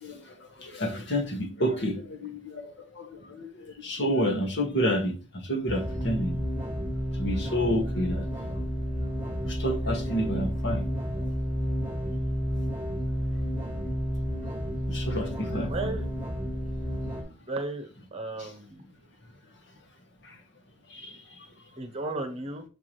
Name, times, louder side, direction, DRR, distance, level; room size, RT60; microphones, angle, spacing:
voice 1, 0.0-5.1 5.4-6.4 7.2-8.3 9.4-10.8 14.9-15.9 18.4-18.5 20.3-20.4 20.9-21.2, equal, 60° left, 1.6 m, -29 dB
sound 1, 5.7-17.2, equal, 10° right, 1.7 m, -31 dB
voice 2, 15.7-16.0 17.5-18.8 21.8-22.6, right 2 dB, 30° right, 1.0 m, -34 dB
6.9 x 4.7 x 3.1 m
head